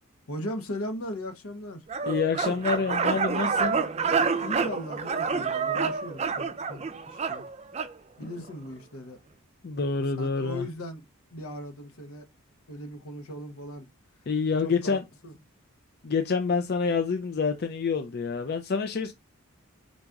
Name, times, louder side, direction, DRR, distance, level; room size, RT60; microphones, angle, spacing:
voice 1, 0.3-1.8 4.4-7.5 8.2-9.2 10.2-11.0 11.3-12.3 12.7-13.9 14.6-15.3, left 1 dB, 80° left, 0.9 m, -38 dB
sound 1, 1.9-7.9, right 5 dB, 30° right, 0.4 m, -28 dB
voice 2, 2.1-3.8 8.2-8.3 9.6-10.6 14.3-15.0 16.0-19.1, left 5 dB, 45° left, 0.4 m, -27 dB
3.9 x 2.5 x 4.5 m
head